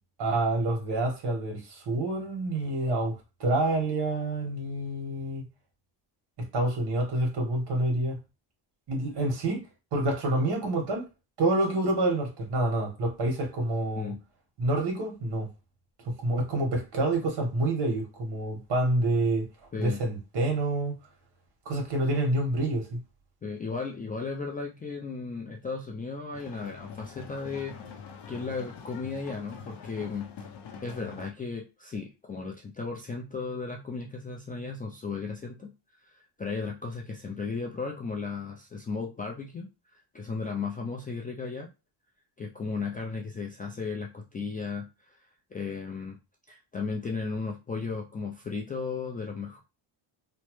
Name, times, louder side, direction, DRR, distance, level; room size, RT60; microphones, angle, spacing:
voice 1, 0.2-5.5 6.5-8.2 8.9-9.7 9.9-11.1 11.4-14.1 14.6-15.5 16.0-19.4 19.8-20.9 21.6-23.0, right 2 dB, 55° right, 1.5 m, -27 dB
voice 2, 23.4-27.8 28.3-30.3 30.8-35.7 36.1-41.7 42.4-45.1 45.5-46.2 46.5-49.6, left 4 dB, 20° left, 0.3 m, -35 dB
sound 1, 26.3-31.3, left 6 dB, 55° left, 0.7 m, -44 dB
3.1 x 2.1 x 3.1 m
cardioid pair, 110°, 49 cm